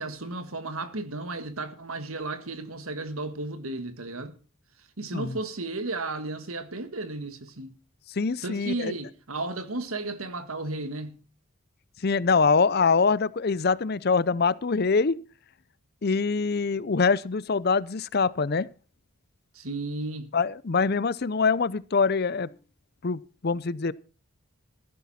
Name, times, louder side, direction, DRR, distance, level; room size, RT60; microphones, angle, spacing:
voice 1, 0.0-4.4 4.8-7.8 8.4-11.2 19.5-20.3, right 2 dB, 75° right, 1.8 m, -34 dB
voice 2, 8.2-8.9 12.0-15.2 16.0-18.7 20.3-22.5 23.0-23.9, left 4 dB, 45° left, 0.6 m, -24 dB
15.0 x 12.5 x 4.3 m
head